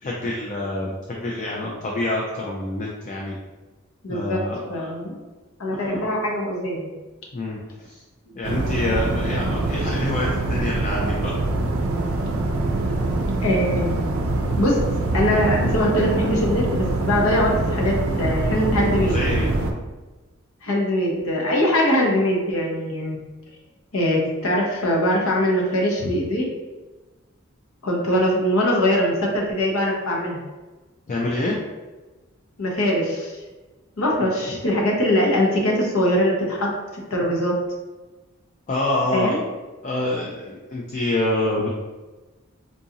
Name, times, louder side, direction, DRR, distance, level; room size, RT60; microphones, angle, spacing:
voice 1, 0.0-3.3 4.1-4.9 5.8-5.9 7.3-8.0 8.3-11.4 19.0-19.5 26.0-26.1 31.1-31.6 38.7-39.4 39.8-41.7, left 1 dB, 35° left, -3 dB, 0.4 m, -26 dB
voice 2, 4.0-4.4 4.7-5.2 5.6-6.9 8.3-8.4 13.4-14.0 14.6-14.8 15.1-19.2 20.6-23.2 23.9-26.5 27.8-30.4 32.6-33.4 34.0-36.7 37.1-37.5 39.1-39.4, equal, 85° left, -2 dB, 0.8 m, -22 dB
sound 1, 8.4-19.7, right 2 dB, 80° right, 0.4 m, -24 dB
3.8 x 2.5 x 2.8 m, 1.2 s
head